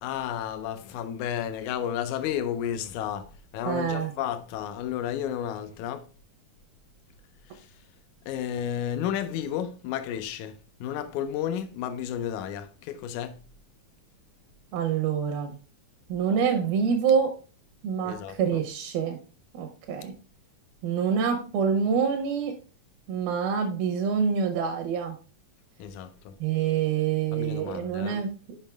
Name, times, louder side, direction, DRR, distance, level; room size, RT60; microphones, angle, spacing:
voice 1, 0.0-6.1 7.4-7.8 8.2-13.4 18.0-18.6 25.8-26.4 27.3-28.2, left 10 dB, 85° left, 1.7 m, -32 dB
voice 2, 3.7-4.1 14.7-15.5 16.1-17.3 17.8-19.2 19.5-20.1 20.8-22.6 23.1-25.2 26.4-28.6, right 7 dB, 80° right, 2.8 m, -26 dB
7.2 x 5.2 x 3.5 m
omnidirectional pair, 4.2 m